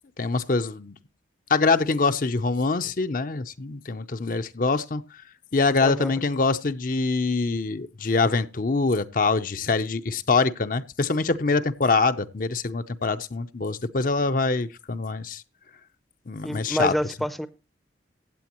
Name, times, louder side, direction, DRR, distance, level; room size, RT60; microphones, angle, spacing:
voice 1, 0.2-0.9 1.5-5.0 5.5-15.4 16.3-16.9, left 3 dB, 45° left, 0.6 m, -24 dB
voice 2, 5.8-6.1 16.4-17.5, equal, ahead, 0.6 m, -28 dB
15.5 x 8.5 x 3.0 m
head